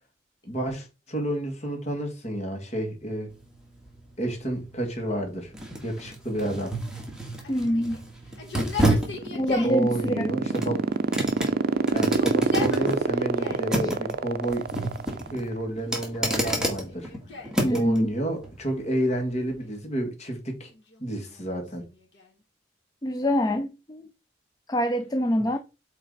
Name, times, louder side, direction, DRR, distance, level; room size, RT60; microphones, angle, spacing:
voice 1, 0.4-3.3 4.2-5.5 5.8-6.8 9.6-10.8 11.9-14.7 15.3-17.1 17.7-20.7 21.0-21.8, right 1 dB, 40° left, 2.0 m, -30 dB
sound 1, 3.3-18.0 18.4-18.6, right 1 dB, 5° right, 1.6 m, -31 dB
Yell, 7.4-9.8 10.7-11.5 11.8-13.7 14.5-15.1 15.8-17.6 19.0-19.9 20.7-22.4, left 4 dB, 75° left, 2.2 m, -40 dB
voice 2, 7.5-8.1 9.3-10.3 17.6-18.1 23.0-24.0 24.7-25.6, equal, 20° left, 0.5 m, -25 dB
sound 2, 9.0-15.5, right 4 dB, 55° right, 0.5 m, -24 dB
8.1 x 3.4 x 4.0 m
head